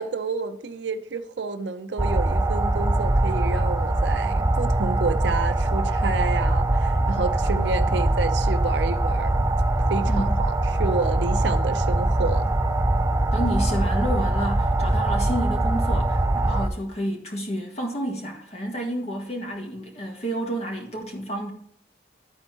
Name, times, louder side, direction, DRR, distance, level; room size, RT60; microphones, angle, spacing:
voice 1, 0.0-9.5 9.9-10.5 10.8-12.5, right 4 dB, 75° right, 0.6 m, -29 dB
sound 1, 2.0-16.7, right 1 dB, 15° right, 0.6 m, -22 dB
voice 2, 10.1-10.4 13.3-21.5, equal, 35° left, 1.8 m, -30 dB
12.0 x 4.4 x 4.4 m
head